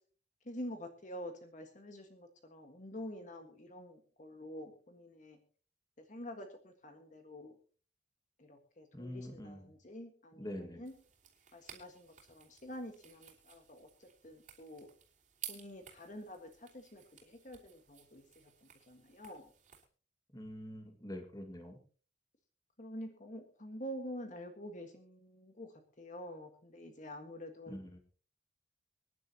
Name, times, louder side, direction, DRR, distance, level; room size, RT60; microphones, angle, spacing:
voice 1, 0.4-5.4 6.0-7.5 8.4-10.9 11.5-14.9 15.5-19.5 22.8-27.8, equal, 45° left, 5 dB, 1.7 m, -48 dB
voice 2, 8.9-9.7 10.4-10.8 20.3-21.8 27.7-28.0, equal, 20° left, 4 dB, 2.0 m, -45 dB
sound 1, 10.9-19.9, right 10 dB, 45° right, 3.4 m, -54 dB
25.0 x 10.5 x 2.9 m, 0.40 s
head